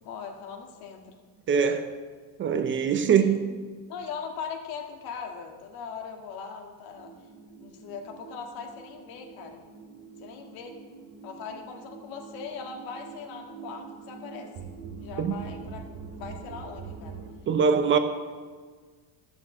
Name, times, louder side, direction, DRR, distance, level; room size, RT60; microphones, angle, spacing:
voice 1, 0.0-1.2 3.1-3.4 3.9-7.1 7.6-9.6 10.2-10.8 11.2-14.7 15.0-17.2, left 6 dB, 65° left, 1.9 m, -40 dB
voice 2, 1.5-1.9 2.4-3.4 15.2-15.4 17.5-18.0, right 6 dB, 30° right, 0.7 m, -22 dB
sound 1, 6.9-17.3, right 6 dB, 65° right, 2.6 m, -44 dB
13.5 x 6.4 x 7.1 m
cardioid pair, 140°, 40 cm